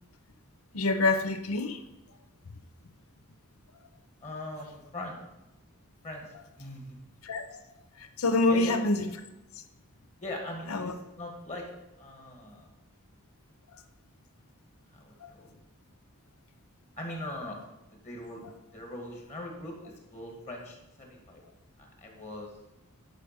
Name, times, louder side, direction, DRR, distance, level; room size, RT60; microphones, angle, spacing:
voice 1, 0.7-1.8 7.2-7.6 8.0-9.1 10.7-10.9 15.2-15.3, left 2 dB, 75° left, 8 dB, 0.8 m, -26 dB
voice 2, 4.2-5.2 6.0-7.0 8.5-8.8 10.2-11.7 12.0-12.7 14.9-15.5 17.0-17.6 17.9-18.4 18.7-21.4 21.8-22.5, left 1 dB, 30° left, 1 dB, 2.1 m, -41 dB
10.5 x 5.0 x 6.9 m, 0.95 s
head